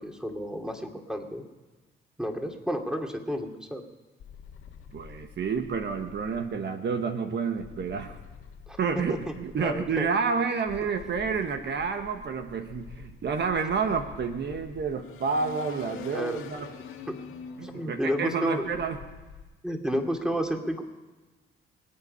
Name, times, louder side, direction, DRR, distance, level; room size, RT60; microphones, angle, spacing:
voice 1, 0.0-1.4 2.2-3.8 8.7-10.1 16.1-16.4 17.6-18.7 19.6-20.8, equal, 5° right, 3 dB, 2.6 m, -31 dB
sound 1, 4.2-6.5 7.6-10.1 10.7-19.4, left 6 dB, 80° left, 1.9 m, -46 dB
voice 2, 4.9-8.1 8.8-16.7 17.6-19.0, right 5 dB, 55° right, 6 dB, 1.3 m, -29 dB
26.0 x 8.8 x 5.5 m, 1.2 s
supercardioid pair, 70°, 21 cm